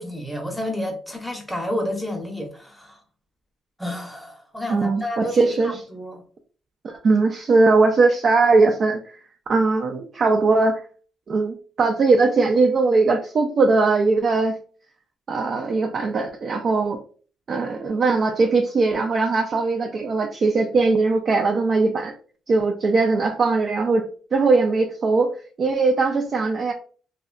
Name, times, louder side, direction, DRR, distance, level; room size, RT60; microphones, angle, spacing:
voice 1, 0.0-3.0 3.8-6.2, left 1 dB, ahead, 0.7 m, -30 dB
voice 2, 4.7-5.7 6.8-9.2 9.5-10.8 11.3-14.6 15.3-17.0 17.5-22.1 22.5-25.3 25.6-26.7, right 3 dB, 50° right, 0.3 m, -20 dB
2.6 x 2.2 x 2.4 m
cardioid pair, 90°, 0 cm